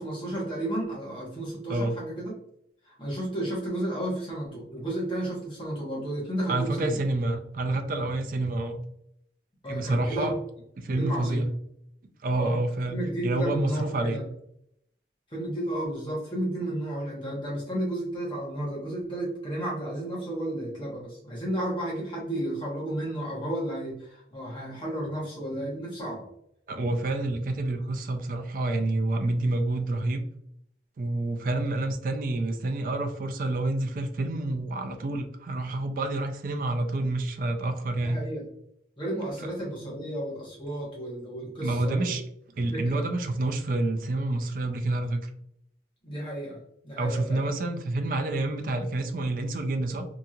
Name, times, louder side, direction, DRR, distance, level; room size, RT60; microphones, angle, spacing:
voice 1, 0.0-2.3 2.8-7.0 9.6-10.3 11.0-11.4 12.3-12.6 12.9-14.2 15.3-26.2 38.0-38.5 39.0-42.1 42.7-43.0 46.0-46.6 46.8-47.4, right 1 dB, 30° left, -5 dB, 0.9 m, -32 dB
voice 2, 6.5-8.8 9.7-10.3 10.8-11.5 12.2-14.2 26.7-30.2 31.0-38.2 41.6-42.2 42.6-45.3 47.0-50.1, right 2 dB, 50° right, 5 dB, 0.3 m, -28 dB
2.9 x 2.6 x 2.3 m, 0.72 s
head